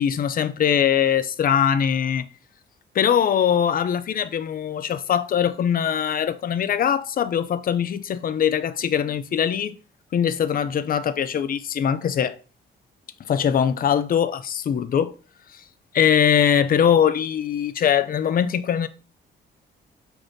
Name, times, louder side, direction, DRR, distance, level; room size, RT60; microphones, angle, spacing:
voice 1, 0.0-2.3 2.9-9.8 10.1-12.4 13.3-15.1 15.9-18.9, left 8 dB, 45° left, 0.5 m, -21 dB
5.0 x 2.6 x 3.9 m
cardioid pair, 90°, 20 cm